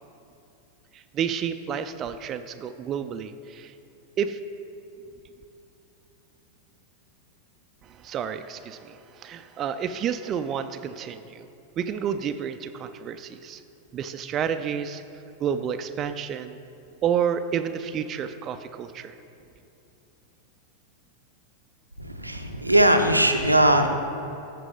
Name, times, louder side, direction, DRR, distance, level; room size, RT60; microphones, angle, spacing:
voice 1, 0.9-3.7 4.2-4.4 7.8-11.5 11.8-13.6 13.9-15.0 15.4-16.6 17.0-19.1, right 8 dB, 30° right, 9 dB, 0.3 m, -30 dB
voice 2, 22.0-23.9, right 1 dB, 90° right, 4 dB, 0.6 m, -20 dB
14.0 x 4.7 x 3.9 m, 2.8 s
figure-of-eight pair, 90°, 0 cm